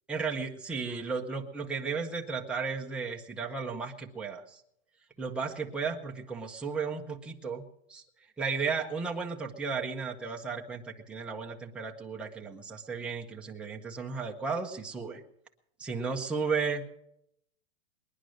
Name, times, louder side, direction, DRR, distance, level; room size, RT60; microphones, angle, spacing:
voice 1, 0.1-4.6 5.2-7.6 7.9-8.0 8.4-15.2 15.8-16.8, right 5 dB, 5° right, -1 dB, 0.8 m, -34 dB
21.0 x 10.5 x 6.3 m, 0.76 s
supercardioid pair, 170°, 33 cm